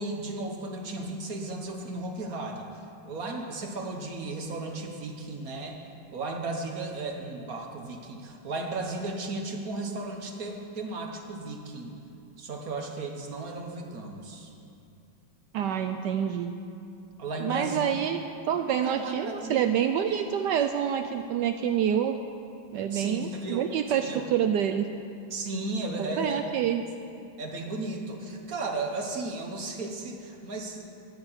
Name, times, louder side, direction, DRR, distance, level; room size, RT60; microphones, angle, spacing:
voice 1, 0.0-2.7 3.0-5.8 6.1-12.0 12.4-14.5 17.2-17.9 18.8-19.6 22.9-23.7 23.9-24.2 25.3-26.4 27.4-30.8, right 2 dB, 50° right, 2 dB, 1.4 m, -35 dB
voice 2, 15.5-16.5 17.4-18.2 18.5-22.2 22.7-24.9 26.0-26.8, right 9 dB, 75° right, 7 dB, 1.0 m, -27 dB
13.0 x 6.8 x 9.0 m, 2.7 s
omnidirectional pair, 2.2 m